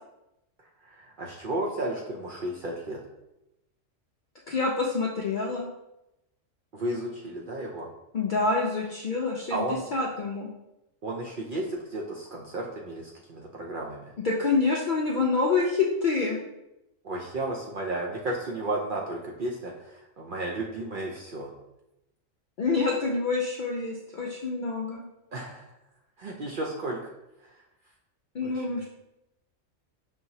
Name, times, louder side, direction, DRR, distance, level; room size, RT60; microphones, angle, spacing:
voice 1, 0.6-3.0 6.7-7.9 9.5-9.8 11.0-14.1 17.0-21.5 25.3-25.7 26.2-27.1 27.4-27.6 28.4-28.7, right 1 dB, 60° right, -1 dB, 0.5 m, -33 dB
voice 2, 4.5-5.7 8.1-10.5 14.2-16.4 22.6-25.0 28.3-28.9, left 4 dB, 65° left, -2 dB, 0.5 m, -27 dB
5.5 x 2.9 x 2.7 m, 0.91 s
omnidirectional pair, 1.4 m